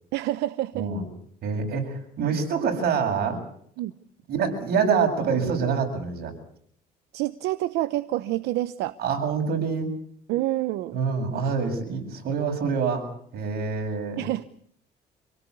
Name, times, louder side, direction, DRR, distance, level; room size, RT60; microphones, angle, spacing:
voice 1, 0.1-0.9 3.8-3.9 7.1-9.0 10.3-11.0 14.2-14.4, right 15 dB, 90° right, 12 dB, 0.9 m, -27 dB
voice 2, 0.7-1.0 1.4-3.4 4.3-6.3 9.0-9.9 10.9-13.1 13.3-14.2, right 5 dB, 65° right, 3 dB, 7.5 m, -26 dB
27.0 x 18.0 x 8.4 m, 0.67 s
cardioid pair, 110°, 17 cm